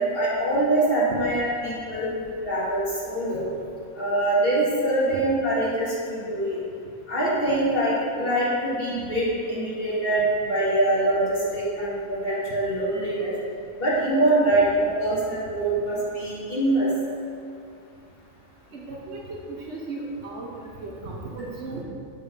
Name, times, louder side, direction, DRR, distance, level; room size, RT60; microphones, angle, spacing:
voice 1, 0.0-3.5 4.0-6.6 7.1-13.3 13.8-16.9, right 1 dB, 45° left, -8 dB, 2.1 m, -24 dB
voice 2, 18.7-20.5 20.8-21.8, right 3 dB, 55° right, -3 dB, 1.1 m, -36 dB
7.2 x 4.2 x 5.7 m, 2.4 s
omnidirectional pair, 1.5 m